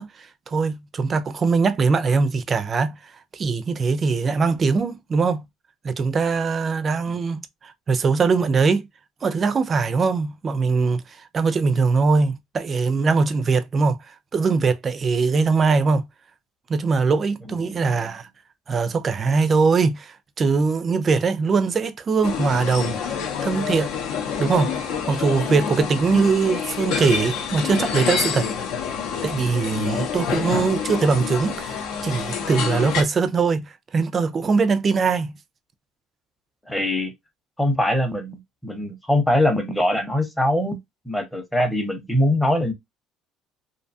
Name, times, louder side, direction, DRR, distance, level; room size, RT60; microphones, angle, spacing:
voice 1, 0.0-5.4 5.8-8.9 9.2-11.0 11.3-14.0 14.3-16.0 16.7-18.3 18.7-23.0 23.4-23.9 24.4-24.7 25.1-28.5 29.2-33.7 33.9-35.3, right 4 dB, 30° right, 0.3 m, -21 dB
voice 2, 17.6-18.1 36.7-37.1 37.6-40.8 41.1-42.7, left 1 dB, 5° left, 0.7 m, -22 dB
sound 1, 22.2-33.0, left 7 dB, 75° left, 0.6 m, -27 dB
2.6 x 2.3 x 2.6 m
cardioid pair, 130°, 0 cm